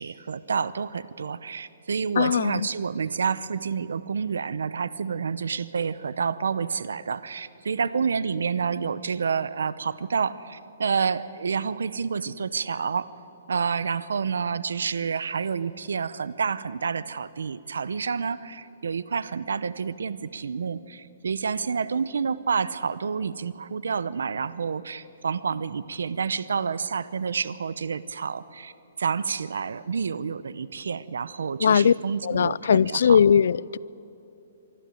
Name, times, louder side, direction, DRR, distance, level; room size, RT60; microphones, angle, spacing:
voice 1, 0.0-13.1 13.5-28.7 29.0-33.3, right 6 dB, 90° right, 0.7 m, -29 dB
voice 2, 2.2-2.7 31.6-31.9 32.2-33.8, left 7 dB, 70° left, 0.4 m, -20 dB
24.0 x 12.5 x 9.2 m
hypercardioid pair, 160°, 0 cm